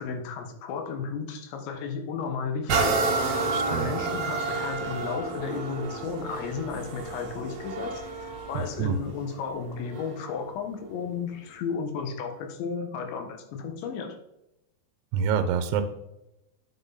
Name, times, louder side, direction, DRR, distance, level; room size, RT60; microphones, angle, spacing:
voice 1, 0.0-3.0 3.7-14.2, left 5 dB, 85° left, 4 dB, 3.8 m, -34 dB
sound 1, 2.7-10.3 10.9-11.0, right 3 dB, 50° right, 2.5 m, -30 dB
voice 2, 3.5-3.9 8.8-9.0 15.1-15.8, right 7 dB, 85° right, 9 dB, 3.0 m, -26 dB
9.2 x 8.6 x 4.1 m, 0.87 s
omnidirectional pair, 5.0 m